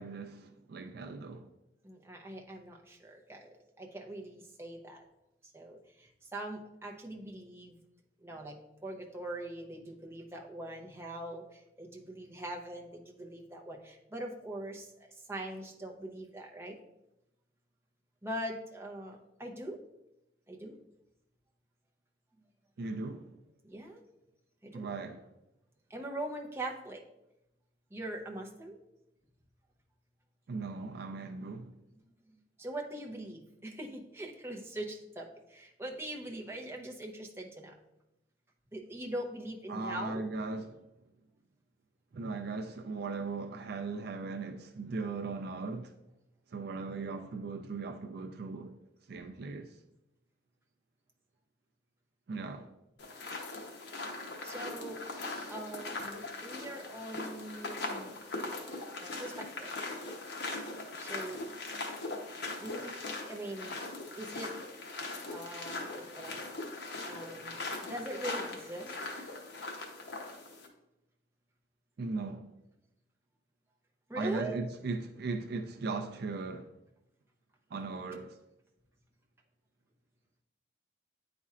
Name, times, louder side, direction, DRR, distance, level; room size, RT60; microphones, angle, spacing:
voice 1, 0.0-1.5 22.8-23.3 24.7-25.3 30.5-31.7 39.7-40.8 42.1-45.9 46.5-48.8 49.1-49.7 52.3-52.7 72.0-72.5 74.2-76.7 77.7-78.4, right 3 dB, 55° right, 0.4 m, -38 dB
voice 2, 1.8-5.1 5.5-7.8 8.2-16.8 18.2-19.8 20.5-20.8 23.6-24.0 24.6-24.9 25.9-27.0 27.9-28.8 31.9-32.0 32.3-37.7 38.7-40.3 54.4-58.2 59.0-59.8 61.0-61.4 62.6-63.8 64.2-64.6 65.2-66.4 67.0-68.9 74.1-74.6, right 1 dB, 15° right, 0.7 m, -42 dB
sound 1, 53.0-70.7, left 2 dB, 65° left, 0.9 m, -40 dB
9.3 x 4.2 x 2.4 m
head